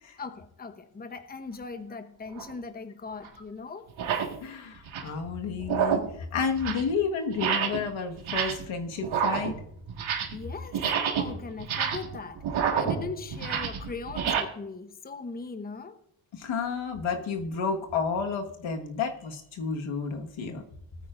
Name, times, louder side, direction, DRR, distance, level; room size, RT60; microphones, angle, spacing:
voice 1, 0.2-3.9 10.3-10.8 11.1-16.0, left 4 dB, 20° left, 0.9 m, -40 dB
sound 1, 2.3-2.5 3.2-3.3 3.9-4.4 4.7-5.2 5.6-6.2 6.5-6.9 7.3-7.9 8.2-8.7 9.0-10.4 10.7-14.4, right 7 dB, 85° right, 1.8 m, -29 dB
voice 2, 4.4-9.5 16.4-20.6, left 5 dB, 80° left, 1.7 m, -31 dB
19.0 x 9.3 x 2.6 m
cardioid pair, 105°, 47 cm